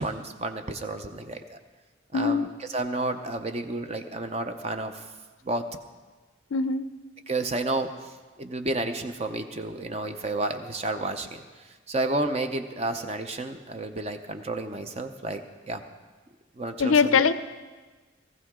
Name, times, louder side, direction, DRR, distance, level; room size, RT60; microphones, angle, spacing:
voice 1, 0.0-1.6 2.1-5.0 5.4-5.6 7.3-7.9 8.4-15.4 15.7-15.8 16.6-17.2, right 2 dB, 30° right, 7 dB, 0.6 m, -31 dB
voice 2, 2.1-2.5 6.5-6.9 16.8-17.3, left 5 dB, 85° left, 13 dB, 0.5 m, -21 dB
19.0 x 14.5 x 3.7 m, 1.3 s
head